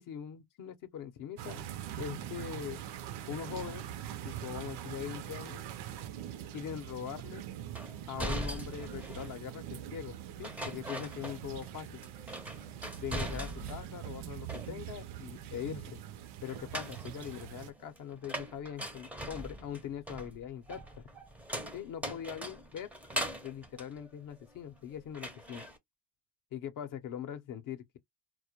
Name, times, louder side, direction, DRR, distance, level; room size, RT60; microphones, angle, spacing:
voice 1, 0.0-1.7 2.0-2.8 3.3-3.9 4.2-5.6 6.5-7.4 8.1-12.0 13.0-16.0 16.4-21.0 21.7-22.9 23.4-25.6 26.5-28.0, left 9 dB, 50° left, 0.6 m, -42 dB
sound 1, 1.4-17.7, right 11 dB, 75° right, 0.5 m, -43 dB
sound 2, 7.7-9.4 10.4-11.7 12.0-13.9 14.2-15.1 16.5-24.8 25.1-25.8, right 1 dB, 5° right, 0.4 m, -41 dB
2.1 x 2.1 x 2.8 m
cardioid pair, 110°, 41 cm